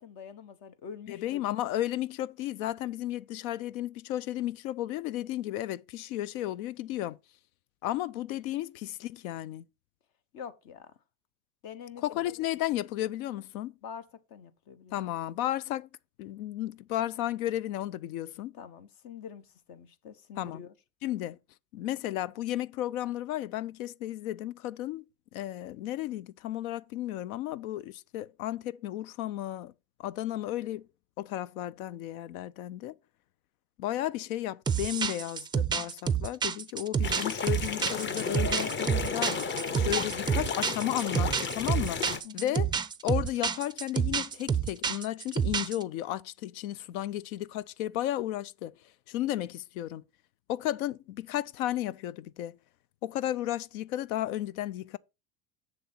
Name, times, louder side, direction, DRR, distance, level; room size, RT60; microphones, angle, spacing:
voice 1, 0.0-1.4 8.4-8.5 10.3-10.9 11.6-12.3 13.8-15.0 18.5-20.7 42.2-42.6, left 7 dB, 55° left, 1.0 m, -46 dB
voice 2, 1.1-7.2 7.8-9.7 12.0-13.7 14.9-15.9 16.2-18.5 20.4-20.6 21.0-21.4 21.7-25.1 25.3-29.7 30.0-30.9 31.2-33.0 33.8-39.5 39.8-42.7 43.0-48.7 49.1-50.0 50.5-52.6 53.0-55.0, left 13 dB, 80° left, 0.5 m, -33 dB
sound 1, 34.7-45.8, right 7 dB, 10° right, 0.3 m, -29 dB
sound 2, 37.0-42.2, left 5 dB, 25° left, 0.8 m, -33 dB
7.0 x 6.6 x 4.3 m
supercardioid pair, 95°, 42 cm